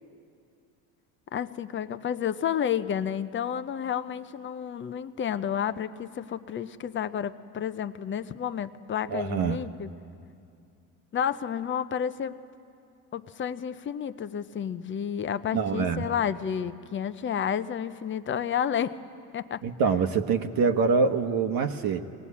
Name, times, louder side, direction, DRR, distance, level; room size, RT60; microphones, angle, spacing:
voice 1, 1.3-9.9 11.1-12.4 13.1-19.0 19.3-19.6, left 8 dB, 30° left, 12 dB, 0.7 m, -31 dB
voice 2, 9.1-9.6 15.5-16.1 19.6-22.0, right 5 dB, 55° right, 6 dB, 1.2 m, -25 dB
21.5 x 19.0 x 8.5 m, 2.5 s
supercardioid pair, 85°, 42 cm